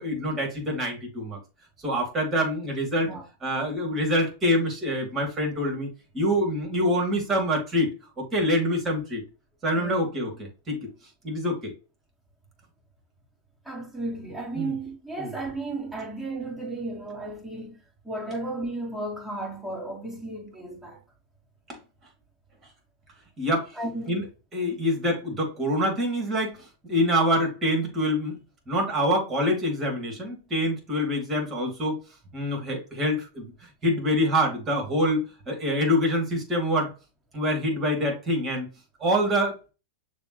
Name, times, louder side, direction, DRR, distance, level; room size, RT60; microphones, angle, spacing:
voice 1, 0.0-1.4 1.8-3.2 3.4-7.9 8.2-9.2 9.6-10.9 11.2-11.7 14.6-14.8 15.2-15.3 21.7-21.8 23.4-23.8 24.1-24.3 24.5-28.4 28.7-32.0 32.3-36.9 37.3-38.7 39.0-39.6, equal, 25° right, 2.7 m, -26 dB
voice 2, 13.6-21.0 23.8-24.2, right 2 dB, 5° right, 2.5 m, -34 dB
6.6 x 2.7 x 3.1 m
hypercardioid pair, 110°, 0 cm